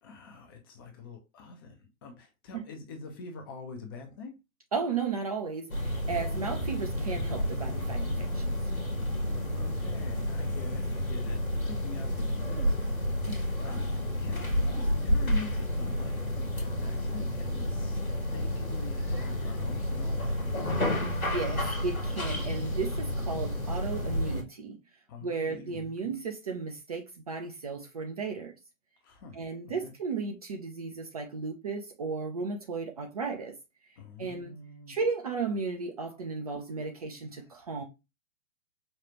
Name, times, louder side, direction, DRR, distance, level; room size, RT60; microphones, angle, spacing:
voice 1, 0.0-4.4 9.0-13.0 13.2-18.0 18.3-20.3 25.1-26.2 29.0-29.4 29.8-29.9 34.0-35.0 37.4-37.5, left 4 dB, 20° left, 0.5 m, -45 dB
voice 2, 4.7-8.6 13.3-13.4 21.0-24.8 25.2-28.5 29.3-33.6 34.2-34.5 34.9-37.8, right 4 dB, 30° right, 0.4 m, -35 dB
sound 1, 5.7-24.4, left 1 dB, 90° left, 1.3 m, -30 dB
5.2 x 2.3 x 2.9 m
figure-of-eight pair, 120°, 41 cm